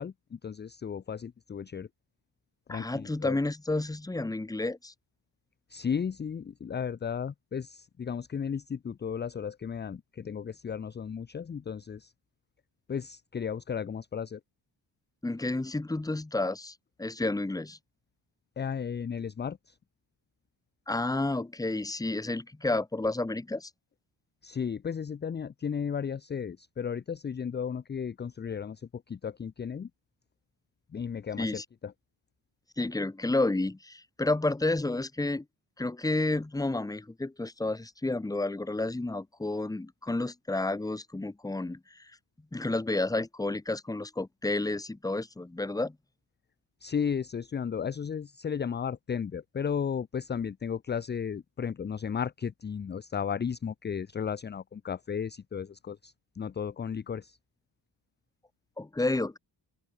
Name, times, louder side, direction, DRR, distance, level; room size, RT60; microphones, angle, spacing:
voice 1, 0.0-1.9 2.7-3.4 5.7-12.1 12.9-14.4 18.6-19.8 24.4-29.9 30.9-31.9 46.8-57.4, left 7 dB, 25° left, 0.4 m, -34 dB
voice 2, 2.7-4.9 15.2-17.8 20.9-23.7 31.4-31.6 32.8-35.4 35.8-42.1 42.5-46.0 58.8-59.4, left 2 dB, 10° left, 0.8 m, -31 dB
open air
wide cardioid pair, 140°, 45 cm